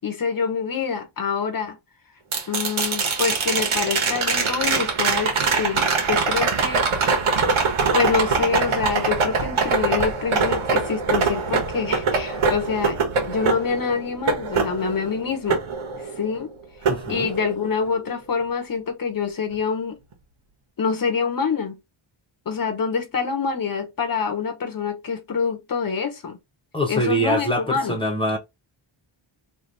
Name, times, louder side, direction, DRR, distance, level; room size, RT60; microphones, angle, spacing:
voice 1, 0.0-1.8 2.5-7.2 7.9-15.6 16.2-16.5 17.1-20.0 20.8-21.8 22.5-26.4 26.9-28.0, left 5 dB, 45° left, 1.0 m, -26 dB
sound 1, 2.3-16.4 16.8-17.9 20.1-20.2, right 4 dB, 75° right, 1.3 m, -23 dB
voice 2, 16.9-17.3 26.7-28.4, right 1 dB, 10° left, 1.1 m, -24 dB
3.3 x 2.6 x 3.9 m
wide cardioid pair, 150°, 49 cm